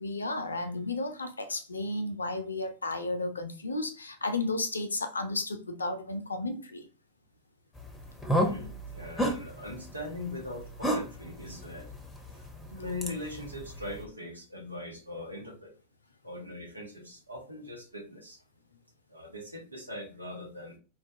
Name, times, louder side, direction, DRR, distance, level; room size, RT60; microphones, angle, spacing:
voice 1, 0.0-6.9, left 2 dB, 75° left, 0.5 m, -33 dB
sound 1, 7.7-14.0, equal, 10° left, 0.7 m, -34 dB
voice 2, 8.4-11.9 12.3-15.7 16.2-18.4 19.1-20.8, left 2 dB, 85° right, 1.0 m, -41 dB
4.2 x 2.3 x 2.6 m
figure-of-eight pair, 90°, 0 cm